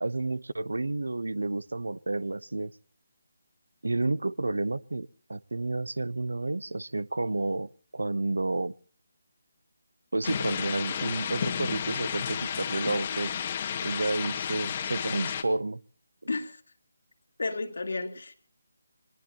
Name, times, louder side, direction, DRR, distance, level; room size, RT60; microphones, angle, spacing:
voice 1, 0.0-2.7 3.8-8.7 10.1-13.4 13.8-15.8, right 2 dB, 80° right, 22 dB, 0.7 m, -30 dB
sound 1, 10.2-15.4, left 8 dB, 35° left, 1.7 m, -32 dB
voice 2, 16.3-16.6 17.4-18.3, left 3 dB, 65° left, 5 dB, 2.6 m, -32 dB
24.5 x 20.5 x 2.9 m, 0.42 s
figure-of-eight pair, 160°, 0 cm